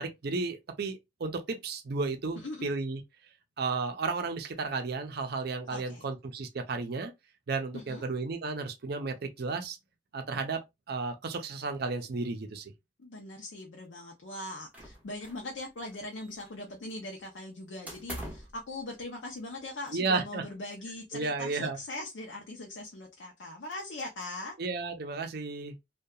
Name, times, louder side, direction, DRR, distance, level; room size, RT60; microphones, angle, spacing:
voice 1, 0.0-3.0 3.6-7.1 7.5-9.8 10.1-10.6 10.9-12.7 19.9-20.4 21.1-21.8 24.6-25.8, right 4 dB, 55° right, 0.5 m, -33 dB
voice 2, 2.4-2.7 5.7-6.1 7.7-8.0 13.0-24.6, left 2 dB, 70° left, 0.6 m, -41 dB
sound 1, 14.7-15.5 15.8-16.7 17.9-18.6, right 1 dB, 5° right, 0.7 m, -43 dB
2.7 x 2.2 x 2.2 m
head